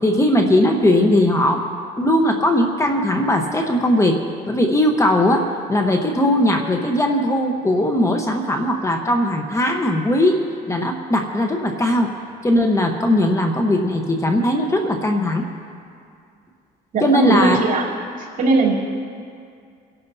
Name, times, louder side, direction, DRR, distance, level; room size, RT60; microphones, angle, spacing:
voice 1, 0.0-1.6 2.0-4.2 4.5-5.4 5.7-10.4 10.7-12.1 12.4-15.4 17.0-17.6, left 1 dB, 15° left, 3 dB, 1.1 m, -18 dB
voice 2, 16.9-17.9 18.4-18.8, right 3 dB, 55° right, -5 dB, 3.5 m, -18 dB
29.0 x 11.5 x 2.8 m, 2.3 s
cardioid pair, 110°, 17 cm